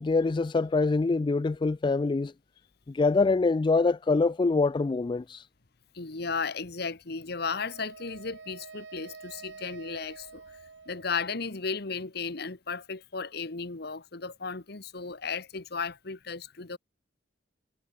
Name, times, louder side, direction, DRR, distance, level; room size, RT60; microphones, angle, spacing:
voice 1, 0.0-2.3 2.9-5.5, left 3 dB, 25° left, 0.3 m, -25 dB
voice 2, 5.9-10.6 10.9-16.8, left 5 dB, 60° left, 1.5 m, -35 dB
Wind instrument woodwind instrument, 7.4-11.5, right 4 dB, 80° right, 1.1 m, -48 dB
head